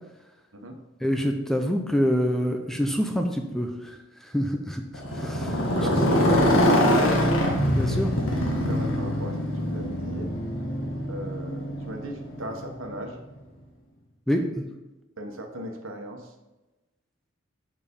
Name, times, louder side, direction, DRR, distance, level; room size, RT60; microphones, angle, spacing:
voice 1, 1.0-3.9 4.2-4.8 5.1-5.6 7.7-8.2 14.3-14.6, equal, ahead, 3 dB, 0.6 m, -26 dB
Motorcycle, 4.9-13.0, equal, 80° left, 1.6 m, -24 dB
voice 2, 5.8-6.9 8.5-10.3 11.0-13.2 15.2-16.3, right 1 dB, 75° right, 4 dB, 1.2 m, -36 dB
6.8 x 5.2 x 5.2 m, 1.1 s
head